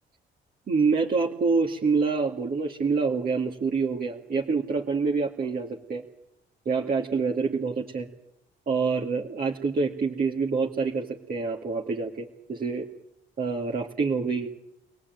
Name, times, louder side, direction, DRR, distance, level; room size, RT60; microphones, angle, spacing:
voice 1, 0.7-6.0 6.7-8.1 8.7-12.9 13.4-14.5, right 4 dB, 50° right, 0 dB, 2.3 m, -26 dB
26.5 x 18.0 x 9.3 m, 0.84 s
cardioid pair, 90°, 20 cm